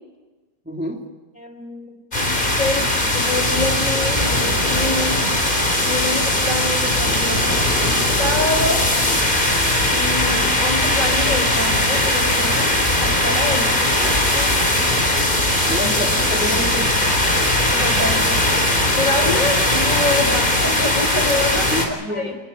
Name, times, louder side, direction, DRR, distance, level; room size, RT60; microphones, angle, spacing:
voice 1, 0.7-1.0 15.7-17.2 21.7-22.4, equal, 5° right, 0 dB, 2.5 m, -28 dB
voice 2, 1.4-5.2 5.8-8.9 9.9-14.7 17.7-22.3, left 2 dB, 45° left, 5 dB, 4.6 m, -27 dB
sound 1, 2.1-21.9, left 1 dB, 25° left, 4.0 m, -19 dB
29.0 x 19.5 x 6.1 m, 1.2 s
omnidirectional pair, 1.9 m